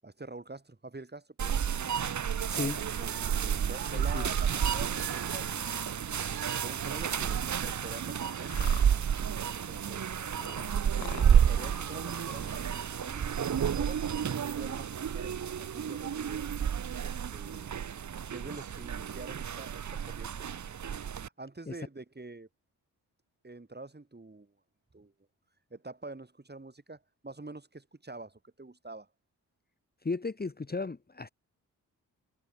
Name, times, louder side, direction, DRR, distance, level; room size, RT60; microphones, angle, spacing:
voice 1, 0.0-1.6 3.0-8.7 9.4-16.5 17.0-17.7 18.3-20.5 21.2-22.5 23.4-24.5 24.9-25.1 25.7-29.1, right 2 dB, 25° right, 6.8 m, -47 dB
sound 1, 1.4-21.3, right 8 dB, 45° right, 1.0 m, -31 dB
voice 2, 2.5-2.8 3.9-4.2 21.7-21.8 30.0-31.3, left 3 dB, 25° left, 1.6 m, -35 dB
Wind, 2.5-8.9, right 10 dB, 75° right, 5.1 m, -49 dB
sound 2, 8.2-14.2, left 15 dB, 90° left, 6.3 m, -49 dB
supercardioid pair, 45°, 39 cm